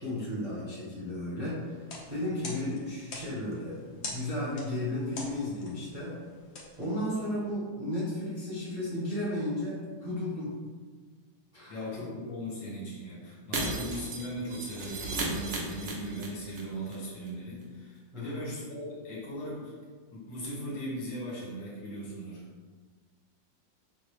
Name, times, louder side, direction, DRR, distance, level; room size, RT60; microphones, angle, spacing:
voice 1, 0.0-6.2 6.8-10.5 11.5-11.8 18.1-18.4, left 1 dB, 30° right, -8 dB, 0.6 m, -34 dB
sound 1, 1.7-7.5, left 2 dB, 55° left, 0.7 m, -45 dB
voice 2, 11.7-19.7 20.1-22.4, equal, 85° left, -5 dB, 1.9 m, -38 dB
Shatter, 13.5-16.6 16.9-17.0 17.3-17.4, right 2 dB, 90° right, 0.6 m, -35 dB
5.9 x 2.1 x 3.2 m, 1.5 s
omnidirectional pair, 2.1 m